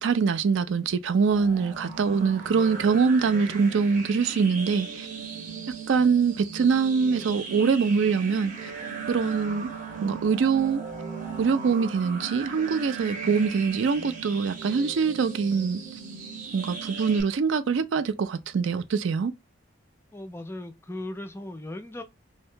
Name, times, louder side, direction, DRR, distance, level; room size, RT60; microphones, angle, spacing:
voice 1, 0.0-5.1 5.9-8.7 9.1-9.7 10.0-10.8 11.4-15.8 16.5-19.3, right 5 dB, 65° right, 0.4 m, -24 dB
sound 1, 1.2-17.2, right 5 dB, 40° right, 0.8 m, -38 dB
voice 2, 20.1-22.0, left 1 dB, 10° left, 0.3 m, -37 dB
2.8 x 2.6 x 3.2 m
head